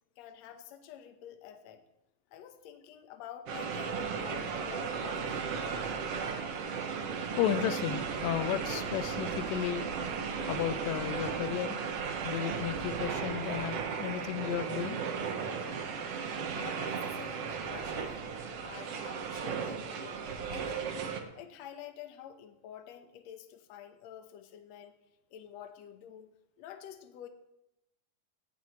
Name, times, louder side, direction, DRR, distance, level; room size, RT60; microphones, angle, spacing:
voice 1, 0.2-1.8 2.3-6.0 16.5-18.2 18.6-20.2 20.5-20.9 21.3-24.9 25.3-27.3, left 10 dB, 65° left, 7 dB, 2.0 m, -49 dB
sound 1, 3.5-21.2, right 6 dB, 60° right, 1.8 m, -36 dB
voice 2, 7.0-9.9 10.5-11.8 12.2-15.0, left 11 dB, 85° left, 12 dB, 2.3 m, -34 dB
Alarm, 8.2-18.0, right 7 dB, 85° right, 2.7 m, -47 dB
17.0 x 12.5 x 3.1 m, 0.87 s
omnidirectional pair, 3.8 m